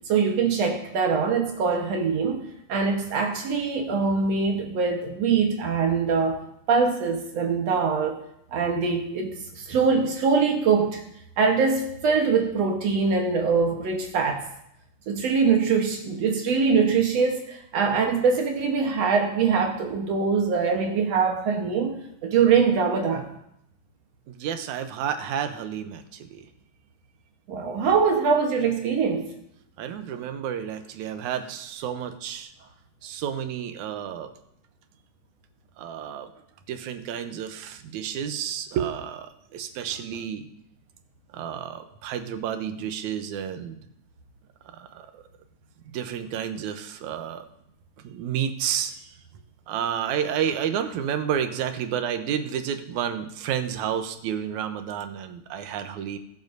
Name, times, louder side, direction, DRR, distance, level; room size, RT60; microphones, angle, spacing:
voice 1, 0.1-6.4 6.7-8.2 8.5-11.0 11.4-14.4 15.1-23.3 27.5-29.3, right 5 dB, 65° right, 2 dB, 2.2 m, -23 dB
voice 2, 24.3-26.5 29.8-32.5 33.0-34.3 35.8-36.3 36.7-40.4 41.3-43.8 44.8-45.2 45.9-47.5 48.0-48.9 49.7-56.2, right 9 dB, 90° right, 8 dB, 2.2 m, -30 dB
21.5 x 7.3 x 2.6 m, 0.76 s
omnidirectional pair, 3.3 m